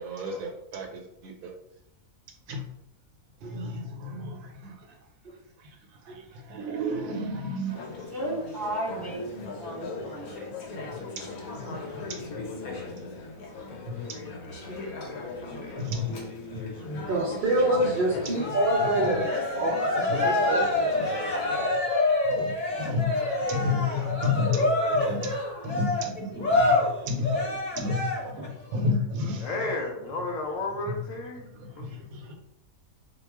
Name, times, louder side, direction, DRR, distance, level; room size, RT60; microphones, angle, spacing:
voice 1, 0.0-1.5 2.5-2.6 3.4-5.1 5.6-8.1 10.2-12.5 12.9-13.0 13.8-14.2 15.4-16.1 16.5-16.9 18.2-18.5 18.8-19.1 20.1-20.5 21.7-21.8 22.2-27.4 27.7-29.7 30.9-31.0 31.5-32.4, left 3 dB, 80° right, 2 dB, 1.0 m, -33 dB
Conversation / Chatter, 7.7-21.7, left 3 dB, 90° left, 1.1 m, -38 dB
voice 2, 8.1-9.2 9.6-10.5 11.7-11.8 22.3-23.2, right 1 dB, 15° right, -6 dB, 1.0 m, -35 dB
voice 3, 17.1-19.3 19.5-20.7, right 1 dB, 60° right, -3 dB, 0.5 m, -26 dB
Cheering, 18.4-28.5, left 2 dB, 40° left, 0.8 m, -26 dB
voice 4, 29.4-31.5 31.8-32.0, left 2 dB, 70° left, 1 dB, 0.9 m, -32 dB
2.3 x 2.3 x 3.3 m, 0.76 s
omnidirectional pair, 1.5 m